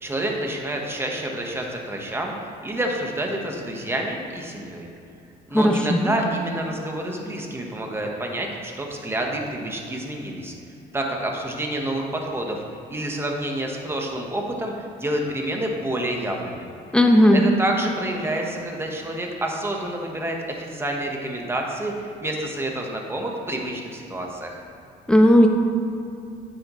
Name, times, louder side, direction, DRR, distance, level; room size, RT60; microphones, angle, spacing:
voice 1, 0.0-4.9 5.5-10.5 10.9-12.6 12.9-16.7 17.3-24.6, right 1 dB, 15° right, 1 dB, 1.3 m, -28 dB
voice 2, 5.5-6.1 16.9-17.4 25.1-25.5, equal, 5° left, 3 dB, 0.9 m, -15 dB
9.3 x 9.2 x 3.2 m, 2.7 s
cardioid pair, 110°, 17 cm